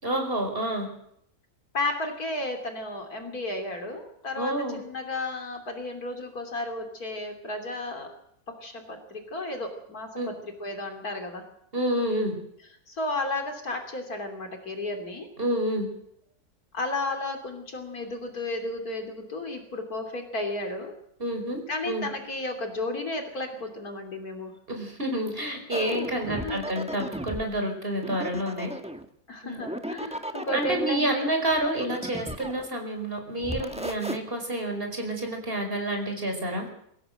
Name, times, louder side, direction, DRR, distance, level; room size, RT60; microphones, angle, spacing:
voice 1, 0.0-0.9 4.4-4.8 10.2-10.3 11.7-12.3 15.4-15.9 21.2-22.1 24.7-28.7 29.4-29.6 30.5-36.7, right 1 dB, 35° right, 4 dB, 5.3 m, -29 dB
voice 2, 1.7-8.1 8.6-11.5 12.9-15.3 16.7-20.9 21.7-24.5 26.3-26.7 29.3-31.3, left 2 dB, 70° left, 4 dB, 3.5 m, -33 dB
sound 1, 25.7-27.5 28.0-29.1 29.5-30.8 31.5-32.7 33.4-34.2, equal, 5° right, 1.2 m, -35 dB
23.5 x 16.5 x 7.9 m, 0.71 s
omnidirectional pair, 1.6 m